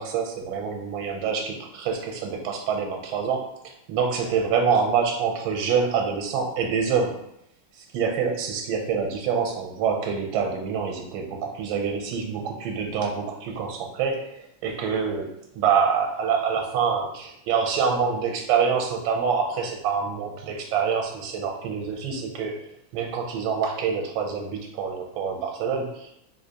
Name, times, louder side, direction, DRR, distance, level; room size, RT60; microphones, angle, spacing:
voice 1, 0.0-3.4 3.9-7.2 7.9-22.6 22.9-26.1, right 6 dB, 85° right, 3 dB, 1.4 m, -26 dB
3.9 x 2.7 x 2.7 m, 0.76 s
omnidirectional pair, 2.2 m